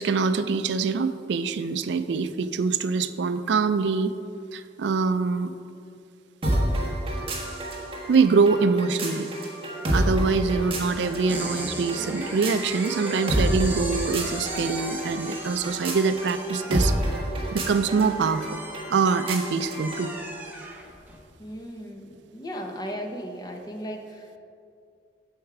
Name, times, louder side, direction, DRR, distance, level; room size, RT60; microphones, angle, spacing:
voice 1, 0.0-4.1 4.5-5.5 8.1-9.3 9.9-16.9 17.5-18.6 18.9-20.1, right 4 dB, 70° right, 11 dB, 0.4 m, -24 dB
sound 1, 6.4-20.1, right 1 dB, 30° right, 1.4 m, -30 dB
voice 2, 10.2-10.5 21.4-24.4, equal, 20° left, 3 dB, 0.8 m, -36 dB
sound 2, 11.3-21.2, right 1 dB, 10° right, 1.1 m, -37 dB
7.9 x 7.2 x 4.8 m, 2.4 s
head